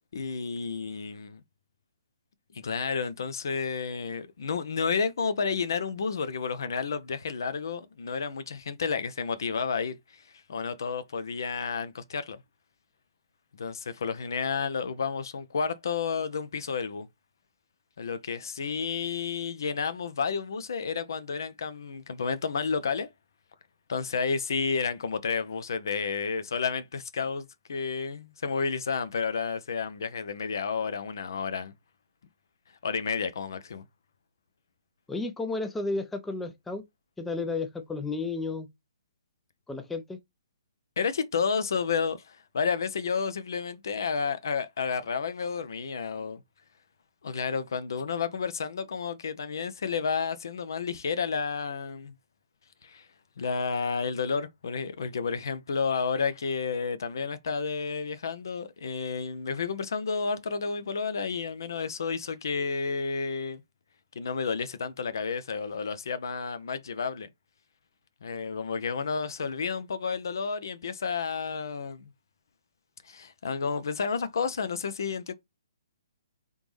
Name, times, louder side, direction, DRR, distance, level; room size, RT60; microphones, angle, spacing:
voice 1, 0.1-1.4 2.5-10.2 10.5-12.4 13.6-17.1 18.0-23.1 23.9-31.7 32.8-33.8 41.0-46.4 47.2-52.1 52.8-53.1 53.4-63.6 64.2-67.3 68.2-72.1 73.0-75.3, left 5 dB, 55° left, 0.6 m, -31 dB
voice 2, 35.1-36.8 37.2-38.7 39.7-40.2, left 3 dB, 5° left, 0.5 m, -32 dB
3.9 x 3.5 x 3.1 m
figure-of-eight pair, 130°, 2 cm